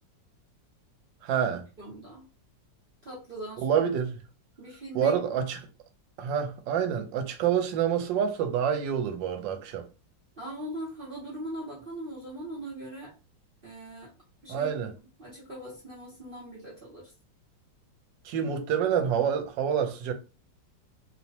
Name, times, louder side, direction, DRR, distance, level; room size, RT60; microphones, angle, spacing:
voice 1, 1.2-1.7 3.6-4.2 4.9-5.7 6.2-9.9 14.5-14.9 18.2-20.1, right 8 dB, 80° right, 1.3 m, -27 dB
voice 2, 1.8-2.3 3.0-3.7 4.6-5.1 10.4-13.1 13.6-14.1 14.4-14.7 15.2-17.1, right 1 dB, 50° right, 0.7 m, -40 dB
3.0 x 2.0 x 2.7 m
omnidirectional pair, 2.0 m